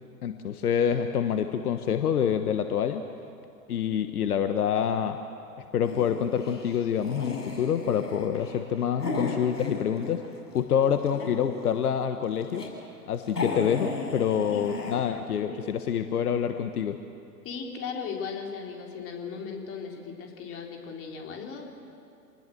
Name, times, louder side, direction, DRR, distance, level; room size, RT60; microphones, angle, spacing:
voice 1, 0.2-3.1 3.7-5.2 5.7-12.7 13.1-17.0, left 8 dB, 65° left, 8 dB, 1.3 m, -27 dB
sound 1, 5.8-10.4 10.8-11.6 12.1-12.7 13.0-13.1 13.3-14.9, left 3 dB, 85° left, 7.3 m, -35 dB
voice 2, 17.4-21.7, left 6 dB, 25° left, 1 dB, 3.8 m, -37 dB
27.5 x 19.5 x 7.8 m, 2.7 s
figure-of-eight pair, 110°, 47 cm